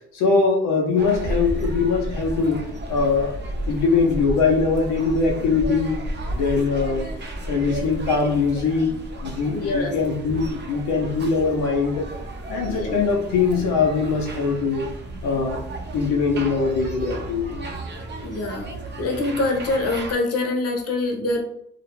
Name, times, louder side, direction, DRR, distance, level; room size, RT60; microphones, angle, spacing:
voice 1, 0.1-2.6 2.9-3.3 3.7-6.0 6.3-8.9 9.2-12.0 12.5-14.9 15.2-15.6 15.9-17.6, left 4 dB, 85° left, 0 dB, 0.5 m, -22 dB
sound 1, 1.0-20.1, right 1 dB, 35° right, 0.5 m, -33 dB
voice 2, 9.5-9.9 12.6-13.0 18.2-18.7 19.0-21.4, left 2 dB, 50° left, 2 dB, 0.7 m, -24 dB
2.4 x 2.1 x 3.0 m, 0.72 s
cardioid pair, 90°, 30 cm